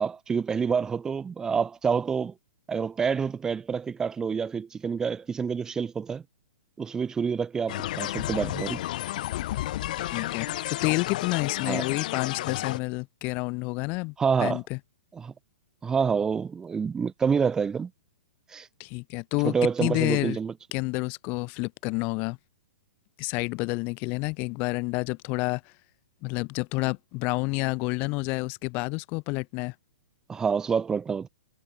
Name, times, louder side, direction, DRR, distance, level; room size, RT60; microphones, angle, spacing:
voice 1, 0.0-2.3 2.7-6.2 6.8-8.8 11.6-11.8 14.2-14.6 15.1-15.3 15.8-17.9 18.5-18.7 19.4-20.5 30.3-31.3, right 6 dB, 10° right, 6.7 m, -27 dB
sound 1, 7.7-12.8, left 14 dB, 50° left, 4.4 m, -32 dB
voice 2, 10.0-14.1 14.4-14.8 18.8-20.4 20.7-22.4 23.2-25.6 26.2-29.7, left 28 dB, 30° left, 4.1 m, -29 dB
hypercardioid pair, 160°, 6 cm